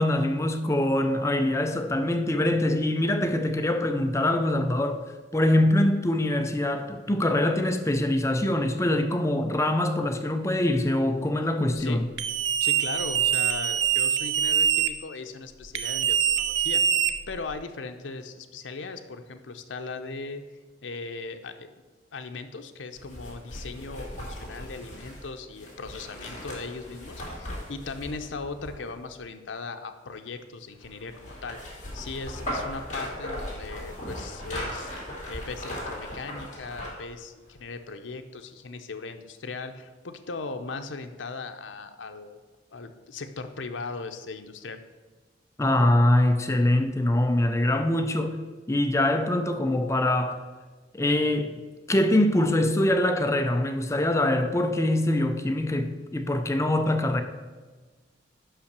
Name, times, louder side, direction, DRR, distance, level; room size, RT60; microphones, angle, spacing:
voice 1, 0.0-5.0 5.3-12.1 45.6-48.4 48.7-50.4 50.9-51.5 51.9-57.2, left 1 dB, 15° left, 0.5 m, -24 dB
sound 1, 12.2-14.9 15.7-17.5, right 9 dB, 70° right, 0.5 m, -24 dB
voice 2, 12.6-16.8 17.3-20.4 20.8-21.7 22.1-34.9 35.3-42.4 42.7-44.8, left 3 dB, 85° left, 0.7 m, -38 dB
sound 2, 23.0-29.1 30.8-37.1 37.5-37.6, left 1 dB, 40° left, 2.7 m, -38 dB
5.7 x 5.7 x 6.7 m
head